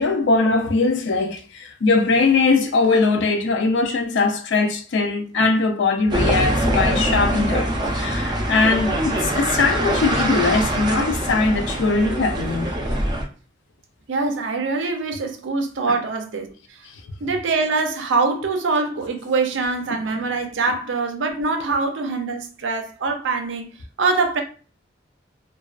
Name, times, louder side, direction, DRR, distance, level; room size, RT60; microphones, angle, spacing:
voice 1, 0.0-12.7 15.9-16.0, left 3 dB, 70° left, 0.4 m, -21 dB
sound 1, 6.1-13.2, right 1 dB, 25° right, 0.4 m, -23 dB
voice 2, 14.1-16.5 17.2-23.7 24.0-24.4, right 3 dB, 85° right, 0.5 m, -23 dB
2.3 x 2.2 x 2.4 m
head